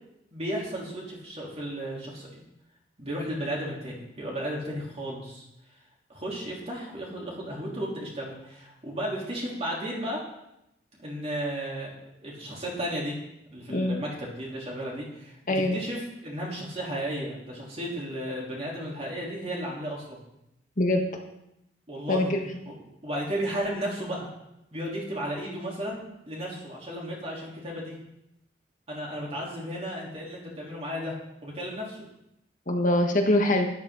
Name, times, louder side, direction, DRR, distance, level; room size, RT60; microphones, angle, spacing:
voice 1, 0.3-2.3 3.0-5.4 6.1-10.2 11.0-11.9 12.2-13.1 13.5-20.2 21.9-22.3 22.7-22.8 23.0-24.3 24.7-28.0 28.9-31.2 31.4-32.1, equal, 35° right, -4 dB, 3.7 m, -34 dB
voice 2, 22.1-22.4 32.7-33.7, left 1 dB, 45° left, 3 dB, 1.4 m, -23 dB
12.5 x 11.0 x 4.0 m, 0.83 s
head